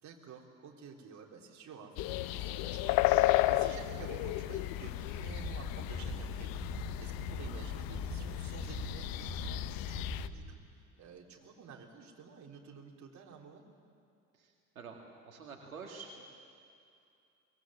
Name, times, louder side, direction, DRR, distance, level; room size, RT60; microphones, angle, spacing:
voice 1, 0.0-6.6 7.0-13.7, right 5 dB, 45° right, 0 dB, 3.7 m, -51 dB
sound 1, 2.0-10.3, left 16 dB, 55° left, 0.9 m, -33 dB
sound 2, 5.0-10.6, right 1 dB, 10° left, 6.1 m, -43 dB
voice 2, 14.3-15.0 15.3-16.2, right 5 dB, 90° right, 1 dB, 2.1 m, -48 dB
23.0 x 18.5 x 8.9 m, 2.5 s
hypercardioid pair, 65°, 41 cm